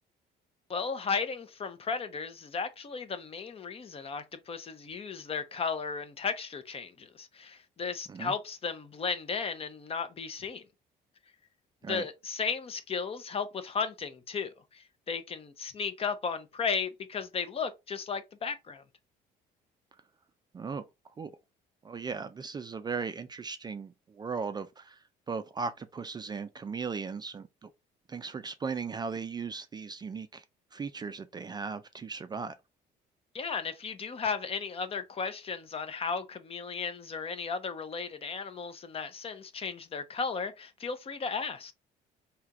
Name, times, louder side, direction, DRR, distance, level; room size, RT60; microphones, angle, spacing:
voice 1, 0.7-10.7 11.9-18.8 33.3-41.7, left 5 dB, 35° left, 0.6 m, -35 dB
voice 2, 21.8-25.0 25.3-27.7 28.1-30.4 30.7-32.5, right 5 dB, 25° right, 0.4 m, -37 dB
3.3 x 2.9 x 3.6 m
cardioid pair, 110°, 17 cm